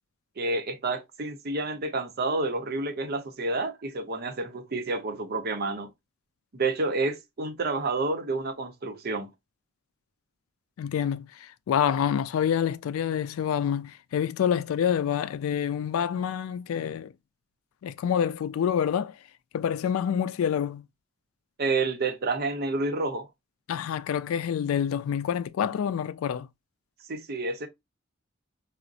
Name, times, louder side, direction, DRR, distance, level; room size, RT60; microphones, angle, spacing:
voice 1, 0.4-5.9 6.5-9.3 21.6-23.3 27.1-27.7, right 3 dB, 50° right, 0.7 m, -29 dB
voice 2, 10.8-17.1 17.8-19.2 19.5-20.9 23.7-26.5, left 8 dB, 90° left, 0.3 m, -27 dB
4.8 x 2.0 x 2.6 m
head